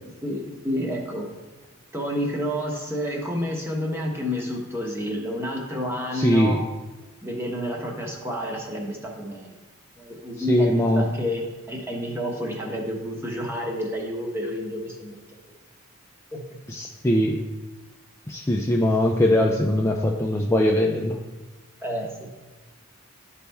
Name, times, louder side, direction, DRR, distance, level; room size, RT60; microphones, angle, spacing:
voice 1, 0.2-1.3 1.9-6.6 7.2-9.6 10.0-15.2 16.3-16.4 21.8-22.3, equal, 10° right, 0 dB, 1.1 m, -29 dB
voice 2, 6.1-6.6 10.4-11.1 16.7-17.4 18.3-21.2, left 1 dB, 10° left, -1 dB, 0.4 m, -21 dB
12.0 x 4.1 x 3.5 m, 1.2 s
head